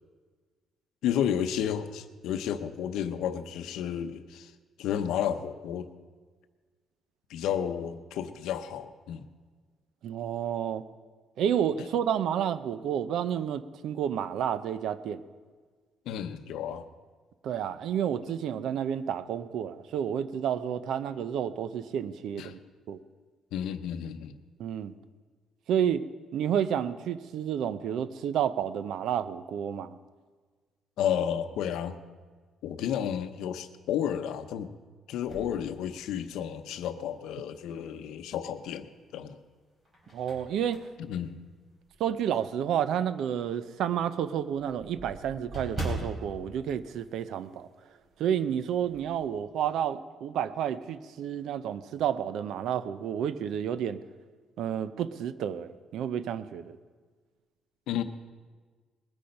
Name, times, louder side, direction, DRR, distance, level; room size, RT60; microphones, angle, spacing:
voice 1, 1.0-4.5 4.8-5.9 7.3-9.2 16.1-16.9 22.4-22.5 23.5-24.3 31.0-32.0 32.6-34.7 35.1-38.9 39.1-39.4 41.1-41.4 57.9-58.0, left 9 dB, 85° left, 9 dB, 0.8 m, -32 dB
voice 2, 10.0-10.8 11.4-15.2 17.4-22.6 22.9-23.0 24.6-24.9 25.7-26.1 26.3-30.0 40.1-40.8 42.0-47.7 48.2-54.0 54.6-56.8, right 9 dB, 65° right, 14 dB, 0.6 m, -30 dB
sound 1, 35.2-36.5 37.1-37.2 38.6-39.2 39.6-42.3 42.7-42.9 43.2-43.3 43.6-43.7 43.9-47.7 48.0-48.2 48.5-49.1, right 1 dB, 20° right, 3.6 m, -41 dB
20.0 x 8.7 x 5.3 m, 1.5 s
cardioid pair, 165°, 0 cm